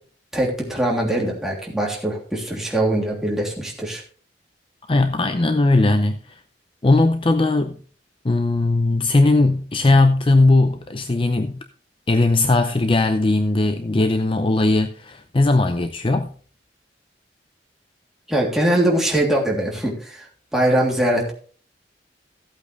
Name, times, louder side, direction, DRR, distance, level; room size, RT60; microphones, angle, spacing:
voice 1, 0.3-4.0 18.3-20.2 20.5-21.3, right 1 dB, ahead, 3.1 m, -22 dB
voice 2, 4.9-6.2 6.8-7.8 8.2-11.6 12.1-16.3, left 2 dB, 30° left, 0.6 m, -18 dB
14.5 x 8.4 x 3.3 m
head